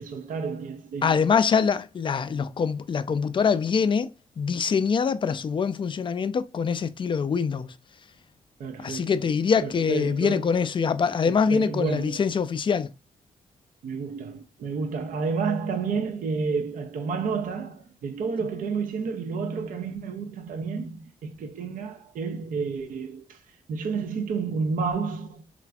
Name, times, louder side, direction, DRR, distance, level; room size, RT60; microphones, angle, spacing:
voice 1, 0.0-1.3 8.6-9.1 9.6-10.5 11.3-12.3 13.8-25.4, right 5 dB, 65° right, 0.5 m, -30 dB
voice 2, 1.0-4.1 4.4-7.7 8.8-12.9, left 6 dB, 35° left, 0.3 m, -24 dB
3.1 x 2.5 x 2.2 m
supercardioid pair, 50°, 15 cm